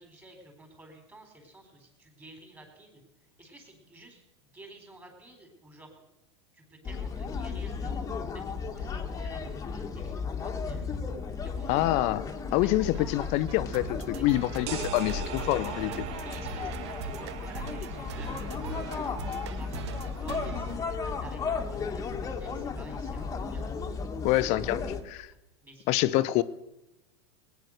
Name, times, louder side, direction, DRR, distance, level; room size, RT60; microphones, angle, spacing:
voice 1, 0.0-3.0 3.4-4.2 4.5-6.1 6.5-11.0 11.4-11.8 12.5-13.1 14.1-14.8 15.8-16.0 16.2-18.9 19.4-25.4 25.6-26.4, right 2 dB, 15° right, 4 dB, 4.2 m, -52 dB
sound 1, 6.8-25.0, left 5 dB, 25° left, 1.5 m, -35 dB
voice 2, 11.7-12.2 12.5-15.9 24.2-25.3 25.9-26.4, left 16 dB, 50° left, 16 dB, 0.7 m, -26 dB
sound 2, 12.9-21.5, right 9 dB, 75° right, 0.9 m, -42 dB
sound 3, 14.7-20.2, right 11 dB, 50° right, 1.0 m, -42 dB
18.5 x 9.4 x 6.5 m, 0.94 s
hypercardioid pair, 110°, 14 cm